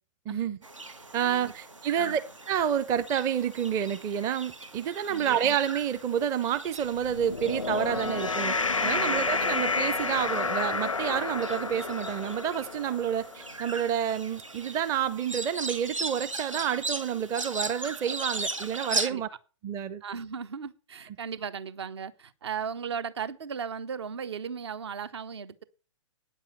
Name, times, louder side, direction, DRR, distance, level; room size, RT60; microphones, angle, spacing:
voice 1, 0.3-0.6 1.1-2.2 2.5-8.5 8.8-19.3 19.6-20.0, right 9 dB, 20° right, 0.6 m, -29 dB
sound 1, 0.6-19.1, right 3 dB, 85° right, 1.4 m, -39 dB
voice 2, 1.2-1.5 2.0-2.2 5.0-5.4 8.9-9.3 19.0-19.2 20.0-25.6, right 6 dB, 55° right, 1.0 m, -37 dB
sound 2, 7.0-13.5, left 4 dB, 90° left, 0.5 m, -30 dB
9.5 x 7.5 x 7.7 m
figure-of-eight pair, 120°, 16 cm